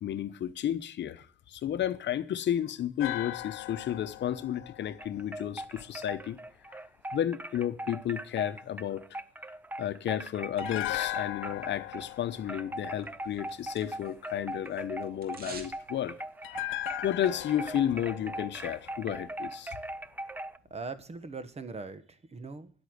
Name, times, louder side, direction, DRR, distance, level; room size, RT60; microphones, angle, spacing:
voice 1, 0.0-6.4 6.7-6.8 7.1-9.2 9.8-16.2 17.0-19.8, left 10 dB, 65° left, 0.9 m, -32 dB
sound 1, 3.0-6.2 10.6-13.8 16.4-19.6 19.9-20.1, left 16 dB, 85° left, 0.6 m, -39 dB
sound 2, 5.0-12.1 12.5-20.6, right 1 dB, 10° right, 0.6 m, -40 dB
sound 3, 13.0-14.3 14.5-15.8 16.1-16.2, right 4 dB, 50° right, 2.3 m, -47 dB
voice 2, 20.7-22.7, right 4 dB, 30° right, 1.3 m, -41 dB
11.0 x 8.3 x 7.9 m
cardioid pair, 90°, 20 cm